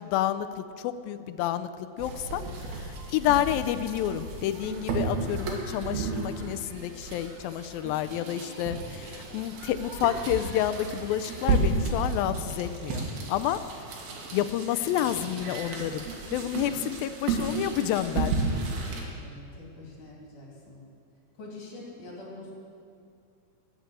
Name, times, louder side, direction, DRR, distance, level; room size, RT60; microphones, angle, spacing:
voice 1, 0.0-2.4 2.7-13.6 14.3-16.0 16.3-18.4, left 12 dB, 80° left, 11 dB, 2.3 m, -29 dB
sound 1, 2.0-19.0, right 3 dB, 90° right, 3.8 m, -33 dB
voice 2, 8.1-8.5 16.6-16.8 19.2-20.9 21.4-22.5, left 2 dB, 55° left, -3 dB, 4.0 m, -45 dB
20.5 x 8.1 x 7.6 m, 2.4 s
omnidirectional pair, 4.3 m